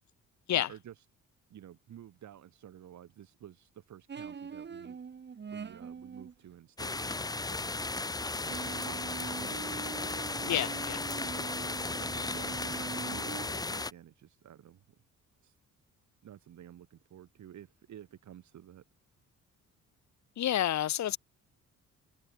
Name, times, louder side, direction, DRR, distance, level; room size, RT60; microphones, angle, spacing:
voice 1, 0.5-1.1 1.5-5.0 5.5-9.6 10.4-10.7 12.0-15.0 15.4-15.6 16.2-18.8, right 10 dB, 70° right, 7.5 m, -52 dB
sound 1, 4.1-6.3 8.4-13.5, right 6 dB, 35° right, 1.7 m, -43 dB
sound 2, 6.8-13.9, left 3 dB, 15° left, 0.8 m, -35 dB
voice 2, 10.5-11.1 20.4-21.2, left 11 dB, 65° left, 1.7 m, -29 dB
cardioid pair, 90°, 30 cm